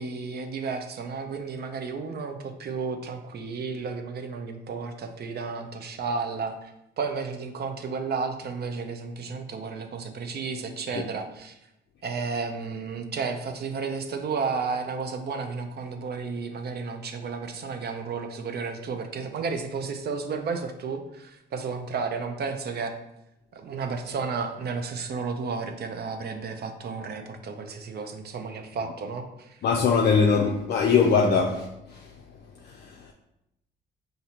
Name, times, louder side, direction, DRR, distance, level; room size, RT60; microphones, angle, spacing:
voice 1, 0.0-11.5 12.0-22.9 23.5-29.6, right 5 dB, 55° right, 0.6 m, -32 dB
voice 2, 29.6-32.1 32.6-33.1, left 5 dB, 55° left, 0.5 m, -22 dB
4.2 x 2.6 x 4.2 m
cardioid pair, 90°, 20 cm